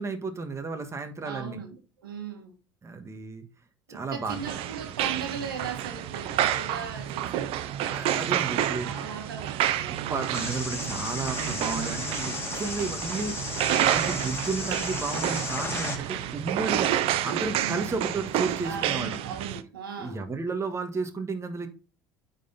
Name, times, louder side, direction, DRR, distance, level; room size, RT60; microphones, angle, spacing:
voice 1, 0.0-1.6 2.8-3.4 3.9-4.4 7.9-8.9 10.1-13.3 13.8-19.2 20.0-21.7, right 3 dB, 25° right, 1.5 m, -33 dB
voice 2, 1.2-2.5 3.9-7.8 8.5-10.3 17.5-18.0 18.6-20.2, right 6 dB, 85° right, 1.5 m, -38 dB
sound 1, 4.3-19.6, right 11 dB, 55° right, 0.7 m, -29 dB
sound 2, 10.3-16.0, left 3 dB, 20° left, 2.0 m, -35 dB
9.1 x 4.1 x 3.9 m
hypercardioid pair, 70°, 11 cm